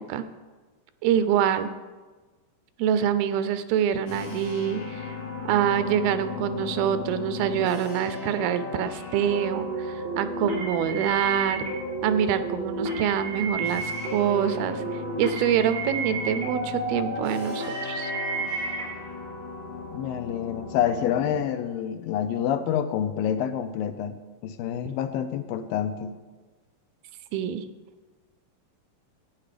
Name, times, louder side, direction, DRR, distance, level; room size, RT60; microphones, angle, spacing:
voice 1, 1.0-1.7 2.8-5.2 5.5-11.7 12.0-14.8 15.2-18.1 27.3-27.6, right 9 dB, 90° right, 12 dB, 2.5 m, -25 dB
sound 1, 4.1-21.4, left 5 dB, 60° left, 2.4 m, -37 dB
sound 2, 9.3-18.8, right 3 dB, 55° right, 4.8 m, -32 dB
voice 2, 19.9-24.2 24.4-26.2, left 9 dB, 80° left, 10 dB, 2.4 m, -27 dB
12.0 x 9.0 x 5.0 m, 1.3 s
omnidirectional pair, 4.2 m